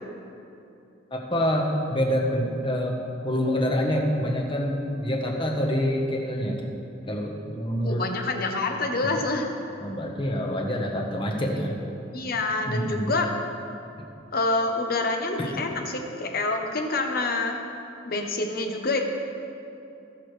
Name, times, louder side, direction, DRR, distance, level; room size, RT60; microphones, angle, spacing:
voice 1, 1.3-3.0 3.2-6.7 7.1-8.0 9.0-9.2 9.8-11.7 12.7-13.1 15.4-15.7, equal, 25° left, 0 dB, 1.2 m, -26 dB
voice 2, 7.8-9.5 12.1-13.3 14.3-17.6 18.0-19.0, left 2 dB, 50° left, 3 dB, 1.0 m, -27 dB
18.5 x 6.5 x 3.3 m, 2.7 s
head